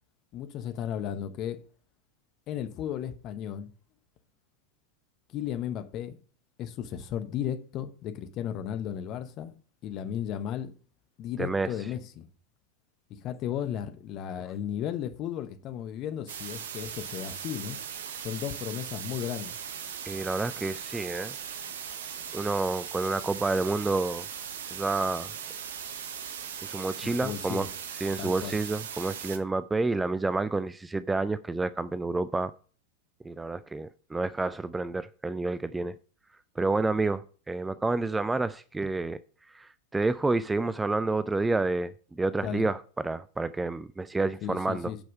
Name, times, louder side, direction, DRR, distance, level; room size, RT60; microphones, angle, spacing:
voice 1, 0.3-1.6 2.5-3.7 5.3-6.2 6.6-9.5 9.8-10.7 11.2-12.3 13.2-17.8 18.2-19.6 27.0-27.7 28.2-28.6 42.4-42.7 44.4-45.0, left 10 dB, 35° left, 1.0 m, -34 dB
voice 2, 11.4-11.7 20.1-21.4 22.3-24.3 24.7-25.3 26.6-27.7 28.0-32.5 33.2-35.9 36.6-39.2 39.5-44.9, right 3 dB, 10° right, 0.3 m, -29 dB
sound 1, 16.3-29.4, right 8 dB, 60° right, 0.9 m, -39 dB
8.9 x 5.5 x 5.3 m
figure-of-eight pair, 90°, 0 cm